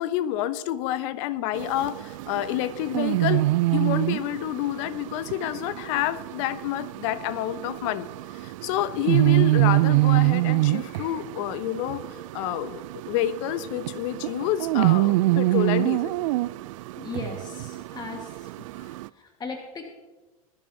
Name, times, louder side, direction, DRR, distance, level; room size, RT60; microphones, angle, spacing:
voice 1, 0.0-3.4 3.7-8.1 8.4-12.0 12.3-16.2, left 13 dB, 55° left, 13 dB, 1.0 m, -28 dB
sound 1, 1.5-19.1, right 19 dB, 60° right, 0.4 m, -25 dB
voice 2, 17.0-18.7 19.0-19.9, left 3 dB, 20° left, 2 dB, 1.9 m, -38 dB
20.0 x 11.5 x 2.9 m, 1.2 s
hypercardioid pair, 85°, 19 cm